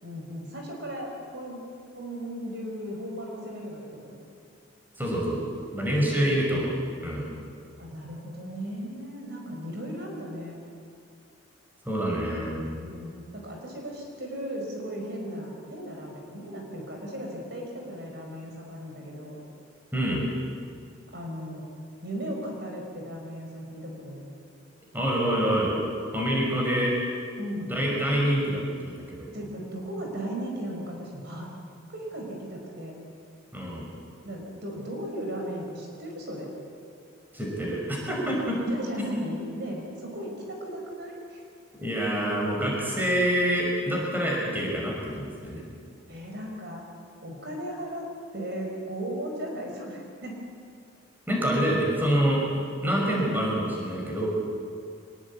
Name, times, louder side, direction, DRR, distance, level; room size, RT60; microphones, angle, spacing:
voice 1, 0.0-1.7 2.0-4.2 7.8-10.6 12.8-19.4 21.1-21.6 22.0-24.3 27.4-27.7 29.3-31.5 31.9-32.9 34.2-36.5 38.7-41.4 46.1-46.8 47.2-48.1 48.3-50.4, equal, 55° right, 0 dB, 5.3 m, -36 dB
voice 2, 5.0-5.4 5.7-6.7 7.0-7.3 11.9-12.6 19.9-20.2 24.9-25.8 26.1-26.9 27.7-29.3 33.5-33.9 37.3-37.8 38.1-38.6 39.0-39.2 41.8-45.6 51.3-52.4 52.8-54.3, equal, 10° right, -2 dB, 5.6 m, -26 dB
24.5 x 21.0 x 8.5 m, 2.3 s
head